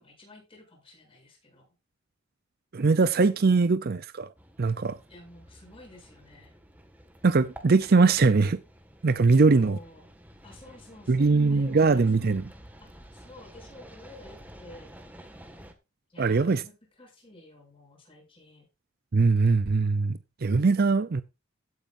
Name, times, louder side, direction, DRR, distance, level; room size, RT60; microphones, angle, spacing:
voice 1, 0.0-1.7 5.1-6.5 9.3-10.1 10.4-12.4 12.8-15.0 16.1-18.7, left 1 dB, 25° left, 7.8 m, -51 dB
voice 2, 2.7-4.3 4.6-5.0 7.2-8.6 9.0-9.8 11.1-12.4 16.2-16.6 19.1-21.2, right 4 dB, 45° right, 0.5 m, -21 dB
sound 1, 4.4-15.7, right 1 dB, 10° right, 1.8 m, -51 dB
16.0 x 9.6 x 2.6 m
head